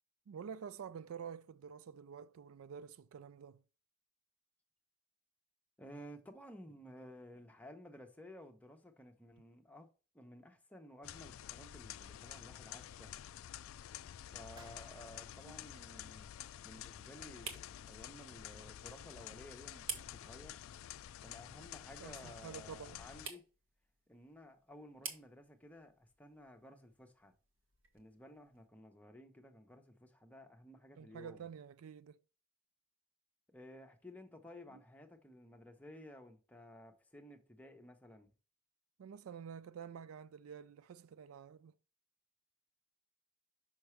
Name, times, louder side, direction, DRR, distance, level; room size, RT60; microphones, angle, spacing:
voice 1, 0.3-3.6 11.6-11.7 15.4-15.6 22.0-23.0 31.0-32.2 34.7-34.8 39.0-41.7, right 7 dB, 85° right, 0.4 m, -49 dB
voice 2, 5.8-13.1 14.3-16.3 16.6-20.6 21.2-23.5 24.1-27.3 27.9-31.4 33.5-38.3, left 1 dB, 5° left, 0.8 m, -55 dB
sound 1, 11.0-23.3, left 11 dB, 75° left, 0.3 m, -50 dB
sound 2, 13.9-28.7, right 5 dB, 70° right, 1.5 m, -54 dB
sound 3, 14.6-16.8, right 2 dB, 20° right, 0.9 m, -64 dB
6.1 x 5.8 x 3.2 m
head